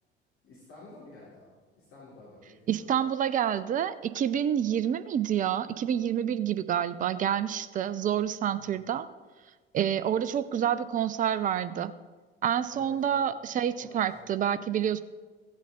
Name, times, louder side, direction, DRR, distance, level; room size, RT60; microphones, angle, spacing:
voice 1, 0.4-1.5 1.8-2.9 8.5-8.8 12.7-13.2 13.8-14.3, left 2 dB, 45° left, -8 dB, 3.5 m, -51 dB
voice 2, 2.7-9.1 9.7-11.9 12.4-15.0, right 9 dB, 25° right, 15 dB, 0.5 m, -28 dB
14.5 x 8.3 x 3.9 m, 1.4 s
figure-of-eight pair, 60°, 30 cm